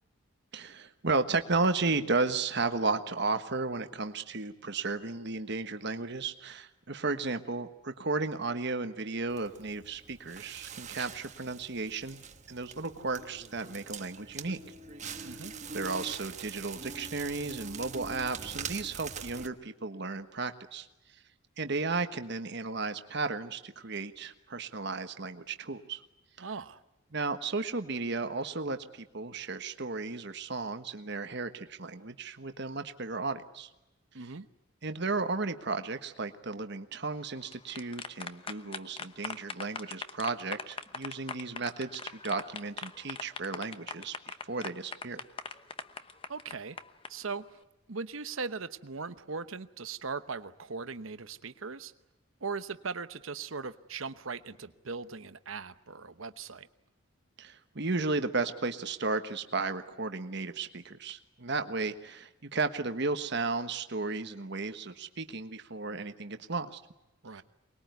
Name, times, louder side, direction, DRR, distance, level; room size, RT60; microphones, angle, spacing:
voice 1, 0.5-12.2 12.5-14.6 15.0-15.4 15.7-20.9 21.6-26.0 26.4-26.5 27.1-33.7 34.8-44.1 44.4-45.2 57.4-66.8 67.4-67.5, right 3 dB, 55° right, 8 dB, 1.3 m, -34 dB
Crackle, 9.3-19.5, right 5 dB, 35° right, 1.3 m, -43 dB
voice 2, 15.2-15.5 26.4-26.8 34.1-34.5 46.3-46.8 47.1-47.6 47.9-51.9 52.4-56.7 67.2-67.4, right 4 dB, 70° right, 12 dB, 1.0 m, -39 dB
sound 1, 37.3-47.1, left 4 dB, 25° left, 1.0 m, -40 dB
24.5 x 21.0 x 9.4 m, 0.95 s
head